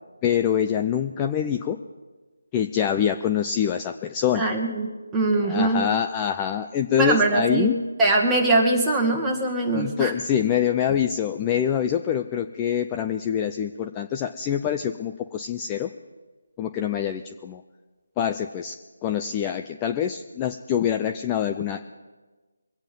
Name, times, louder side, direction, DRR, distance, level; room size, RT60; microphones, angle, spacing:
voice 1, 0.2-1.8 2.5-4.5 5.4-7.8 9.7-15.9 16.6-17.6 18.2-18.7 19.0-21.8, left 9 dB, 15° left, 6 dB, 0.5 m, -25 dB
voice 2, 4.3-5.8 7.0-7.7 8.0-10.1, right 2 dB, 5° right, -3 dB, 1.9 m, -22 dB
24.0 x 9.0 x 5.3 m, 1.3 s
figure-of-eight pair, 160°, 0 cm